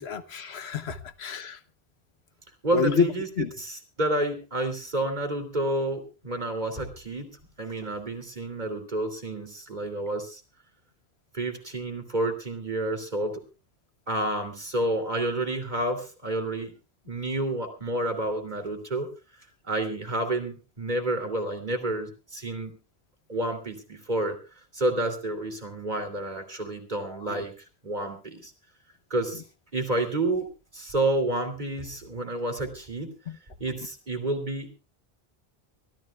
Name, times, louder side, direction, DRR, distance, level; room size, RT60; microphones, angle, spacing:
voice 1, 0.0-1.6 2.7-3.1 3.4-3.5 27.0-27.4 33.3-33.4, left 5 dB, 85° left, 1.3 m, -28 dB
voice 2, 2.6-3.3 3.6-10.4 11.3-13.4 14.1-16.7 17.0-19.1 19.7-22.8 23.3-24.4 24.7-27.5 27.8-28.5 29.1-29.4 29.7-30.5 30.7-33.1 33.6-34.7, right 1 dB, 45° right, 3.1 m, -29 dB
24.5 x 14.0 x 2.4 m
omnidirectional pair, 1.0 m